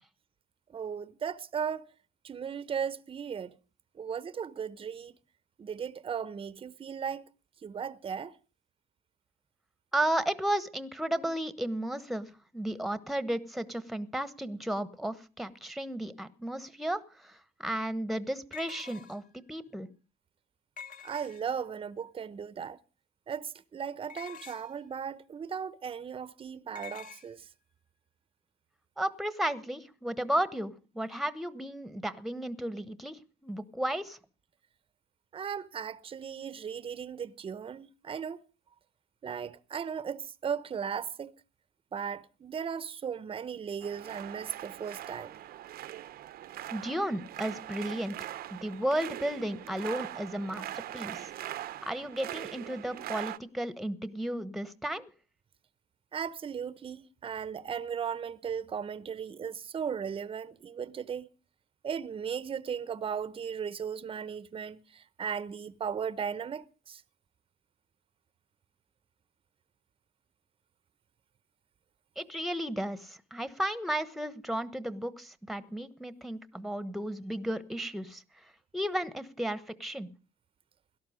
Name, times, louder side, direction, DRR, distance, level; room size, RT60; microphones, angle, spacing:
voice 1, 0.7-1.9 2.2-3.5 3.9-5.1 5.6-7.3 7.6-8.4 21.0-22.8 23.3-27.5 35.3-38.4 39.2-41.3 41.9-45.4 56.1-61.3 61.8-67.0, right 7 dB, 30° right, 0.8 m, -37 dB
voice 2, 9.9-19.2 19.5-19.9 29.0-34.2 46.7-48.1 48.5-51.3 51.8-55.1 72.2-78.2 78.7-80.1, right 1 dB, ahead, 1.1 m, -34 dB
sound 1, 17.0-17.1 18.5-19.4 20.8-21.7 24.1-24.8 26.8-27.3, left 7 dB, 50° left, 2.0 m, -47 dB
sound 2, 43.8-53.4, right 13 dB, 65° right, 0.8 m, -42 dB
17.5 x 12.5 x 5.0 m
cardioid pair, 110°, 17 cm